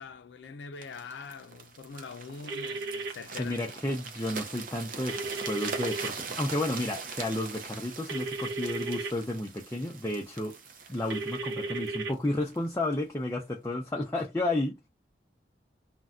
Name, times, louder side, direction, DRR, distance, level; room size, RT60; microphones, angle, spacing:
voice 1, 0.0-3.6, left 5 dB, 80° left, 0.4 m, -43 dB
sound 1, 0.8-12.7 13.3-13.4, right 5 dB, 50° right, 0.5 m, -42 dB
phone calling, 2.5-3.1 5.1-6.1 8.1-9.1 11.1-12.1, right 3 dB, 75° right, 0.8 m, -34 dB
voice 2, 3.4-10.6 10.9-14.8, left 1 dB, 15° left, 0.4 m, -32 dB
2.6 x 2.1 x 3.5 m
head